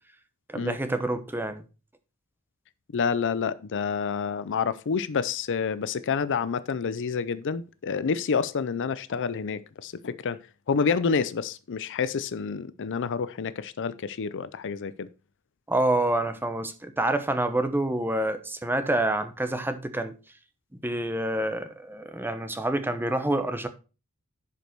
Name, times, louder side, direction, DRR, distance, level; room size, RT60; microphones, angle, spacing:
voice 1, 0.5-1.6 15.7-20.1 20.8-23.7, right 1 dB, 10° right, 0.8 m, -27 dB
voice 2, 2.9-10.4 10.7-15.1, left 5 dB, 55° left, 0.5 m, -28 dB
10.5 x 5.3 x 4.5 m
head